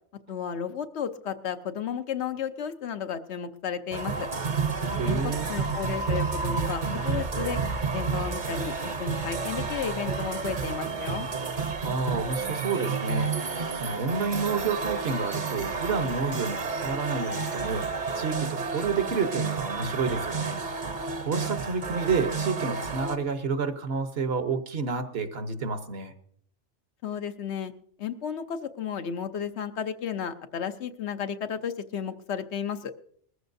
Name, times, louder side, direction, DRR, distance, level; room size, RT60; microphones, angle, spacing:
voice 1, 0.3-4.3 5.0-7.6 7.9-11.3 27.0-27.7 28.0-32.9, left 8 dB, 70° left, 9 dB, 1.0 m, -33 dB
sound 1, 3.9-23.2, right 5 dB, 45° right, 0.9 m, -30 dB
voice 2, 4.9-5.5 11.8-20.6 21.2-26.1, right 4 dB, 60° right, 9 dB, 1.2 m, -30 dB
20.5 x 14.0 x 2.6 m, 0.62 s
omnidirectional pair, 1.2 m